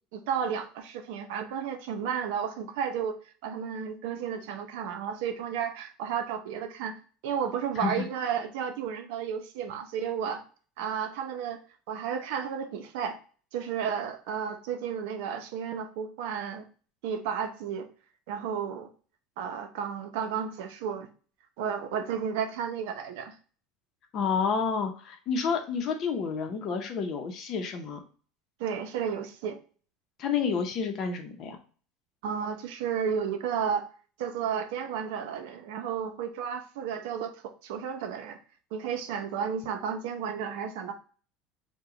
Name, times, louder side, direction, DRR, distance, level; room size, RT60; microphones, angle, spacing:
voice 1, 0.1-3.2 3.4-7.0 7.2-10.4 10.8-11.6 11.9-13.2 13.5-16.7 17.0-17.9 18.3-18.9 19.4-21.1 21.6-23.4 28.6-29.6 32.2-33.8 34.2-38.4 38.7-40.9, right 7 dB, 75° right, 7 dB, 0.7 m, -32 dB
voice 2, 7.8-8.1 24.1-28.0 30.2-31.6, left 6 dB, 40° left, 5 dB, 0.7 m, -29 dB
4.8 x 2.3 x 3.8 m, 0.40 s
cardioid pair, 155°, 0 cm